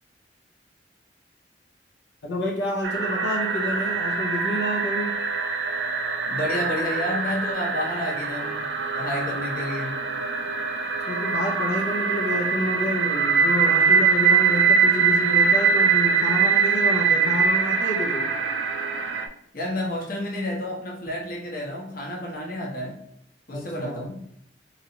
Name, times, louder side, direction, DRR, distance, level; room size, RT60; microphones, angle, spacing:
voice 1, 2.2-5.1 11.1-18.3 23.5-24.0, left 1 dB, 85° left, -2 dB, 0.8 m, -29 dB
sound 1, 2.8-19.3, right 5 dB, 70° right, 0.4 m, -23 dB
voice 2, 6.3-8.7 8.9-10.0 19.5-23.0 23.5-24.2, left 1 dB, 55° left, -1 dB, 1.0 m, -30 dB
3.9 x 3.1 x 2.8 m, 0.75 s
head